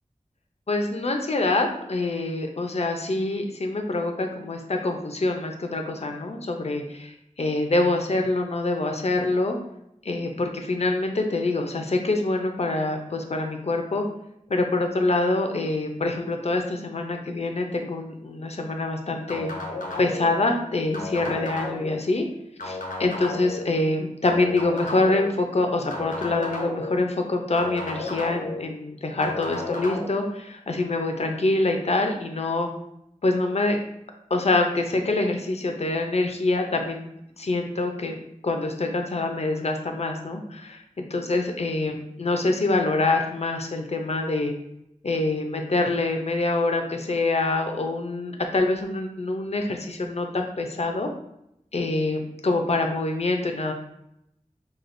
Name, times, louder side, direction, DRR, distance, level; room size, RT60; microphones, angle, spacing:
voice 1, 0.7-9.6 10.0-14.0 14.5-19.5 20.0-22.3 22.6-32.7 33.2-33.8 34.3-37.1 37.4-44.5 45.0-51.1 51.7-53.7, left 2 dB, 50° left, 3 dB, 0.6 m, -25 dB
sound 1, 19.3-20.3 20.9-22.0 22.6-23.6 24.2-25.3 25.9-27.0 27.6-28.6 29.2-30.1, left 2 dB, 90° left, 0.8 m, -33 dB
5.9 x 2.3 x 2.6 m, 0.80 s
wide cardioid pair, 60°, 13 cm